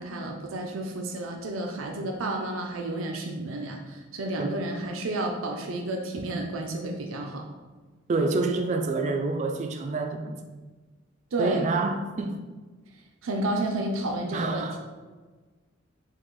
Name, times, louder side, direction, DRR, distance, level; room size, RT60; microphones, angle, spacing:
voice 1, 0.0-7.4 11.3-11.6 13.2-14.8, right 2 dB, 90° right, 2 dB, 0.5 m, -31 dB
voice 2, 8.1-10.4 11.4-12.4 14.3-14.8, right 3 dB, 35° right, 5 dB, 0.3 m, -27 dB
4.7 x 2.4 x 3.8 m, 1.3 s
head